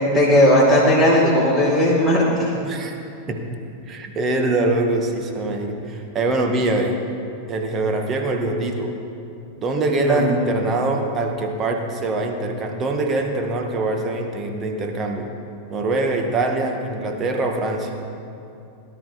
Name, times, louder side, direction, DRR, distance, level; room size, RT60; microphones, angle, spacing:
voice 1, 0.1-2.5 10.0-10.3, left 1 dB, 5° right, -9 dB, 4.4 m, -16 dB
voice 2, 2.6-2.9 3.3-3.4 3.9-7.0 7.5-8.9 9.6-15.3 15.7-17.9, right 2 dB, 25° right, 3 dB, 1.9 m, -23 dB
18.5 x 11.5 x 5.1 m, 2.7 s
figure-of-eight pair, 90°, 0 cm